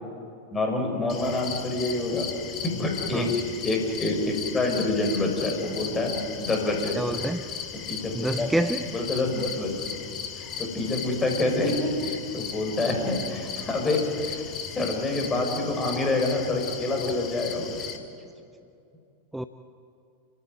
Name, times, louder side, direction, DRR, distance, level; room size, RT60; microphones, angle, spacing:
voice 1, 0.5-2.3 2.6-3.3 3.6-6.9 7.9-8.5 8.9-9.7 10.4-14.4 14.7-17.8, left 2 dB, 15° left, 1 dB, 6.1 m, -27 dB
sound 1, 1.1-18.0, left 7 dB, 30° left, 2.6 m, -37 dB
voice 2, 7.0-7.4 8.1-8.9 19.3-19.4, right 1 dB, 5° right, 10 dB, 0.7 m, -27 dB
28.5 x 16.0 x 9.6 m, 2.5 s
figure-of-eight pair, 90°, 0 cm